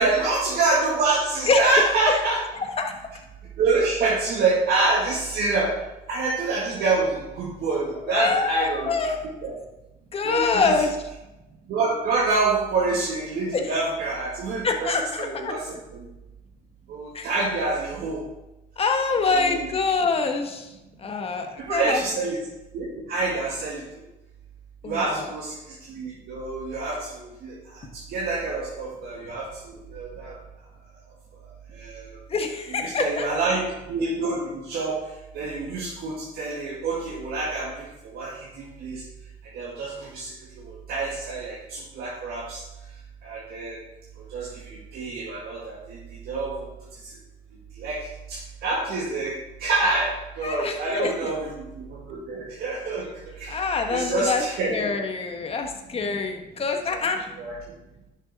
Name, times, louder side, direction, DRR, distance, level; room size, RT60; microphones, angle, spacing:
voice 1, 0.0-2.4 3.6-5.7 6.1-8.9 9.4-9.5 10.2-10.7 11.7-16.1 16.9-18.2 19.3-19.7 21.7-22.4 22.7-23.8 24.8-25.6 25.9-30.3 31.7-32.2 32.7-35.0 35.3-39.0 39.5-40.3 40.6-42.6 43.2-43.8 44.3-46.0 46.3-46.7 47.8-49.3 49.6-53.1 53.3-54.8 57.4-57.5, right 3 dB, 70° right, -4 dB, 1.9 m, -27 dB
voice 2, 2.6-3.0 8.0-9.5 10.1-11.0 13.5-13.6 14.6-15.6 17.1-17.3 18.8-20.7 21.0-22.0 24.8-25.3 27.8-27.9 32.3-33.3 50.4-51.3 53.5-54.4 54.7-57.3, left 4 dB, 35° left, 4 dB, 1.4 m, -25 dB
10.5 x 6.4 x 4.1 m, 0.97 s
cardioid pair, 110°, 17 cm